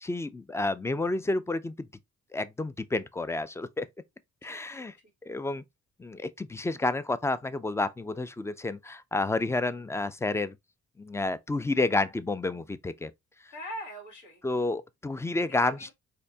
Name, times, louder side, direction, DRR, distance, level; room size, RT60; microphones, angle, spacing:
voice 1, 0.0-1.9 2.3-3.9 4.4-4.9 5.2-5.6 6.0-10.5 11.0-13.1 14.4-15.9, left 2 dB, 10° left, 0.3 m, -30 dB
voice 2, 4.4-4.9 13.5-14.4 15.5-15.9, equal, 75° left, 2.2 m, -42 dB
4.3 x 2.8 x 2.7 m
cardioid pair, 90°, 30 cm